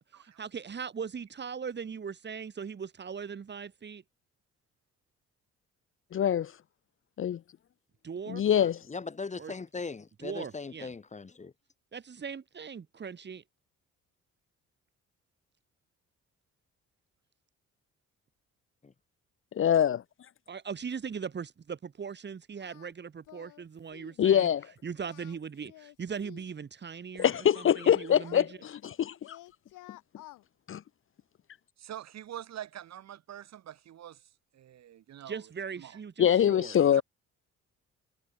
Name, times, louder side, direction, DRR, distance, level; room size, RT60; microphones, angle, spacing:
voice 1, 0.1-4.0 8.0-8.4 9.4-9.5 10.2-10.9 11.9-13.4 20.5-24.5 24.8-28.6 35.2-37.0, right 6 dB, 35° right, 1.5 m, -40 dB
voice 2, 6.1-6.5 7.2-7.4 8.3-8.8 19.6-20.0 24.2-24.7 27.2-29.4 30.7-30.8 36.2-37.0, left 9 dB, 45° left, 0.6 m, -24 dB
voice 3, 8.6-11.5 18.8-18.9, left 4 dB, 25° left, 1.1 m, -39 dB
Singing, 22.6-22.9 23.2-23.6 23.9-24.2 25.0-26.5 27.2-29.0 29.2-30.4, left 16 dB, 90° left, 1.8 m, -53 dB
voice 4, 31.8-34.2 34.5-35.4 35.8-35.9 36.9-37.0, right 11 dB, 60° right, 1.3 m, -44 dB
cardioid pair, 90°, 30 cm